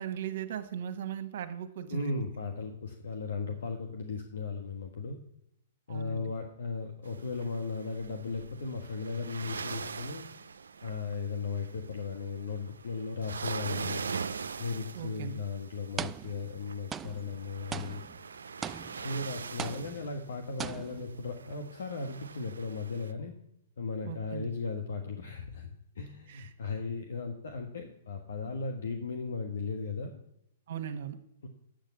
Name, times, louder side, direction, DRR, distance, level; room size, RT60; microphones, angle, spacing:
voice 1, 0.0-2.2 5.9-6.3 14.9-15.3 24.0-24.5 26.3-26.5 30.7-31.2, right 9 dB, 60° right, 7 dB, 1.2 m, -38 dB
voice 2, 1.9-5.2 5.9-10.3 10.8-14.1 14.6-18.0 19.0-23.3 23.8-30.2 31.4-31.5, left 4 dB, 75° left, 4 dB, 1.3 m, -36 dB
sound 1, 7.0-23.1, right 5 dB, 85° right, 0.5 m, -42 dB
sound 2, 14.9-15.1 16.0-16.6 16.9-19.2 19.6-20.3 20.6-21.2, right 7 dB, 20° right, 0.3 m, -40 dB
8.3 x 6.4 x 8.3 m, 0.76 s
hypercardioid pair, 125°, 0 cm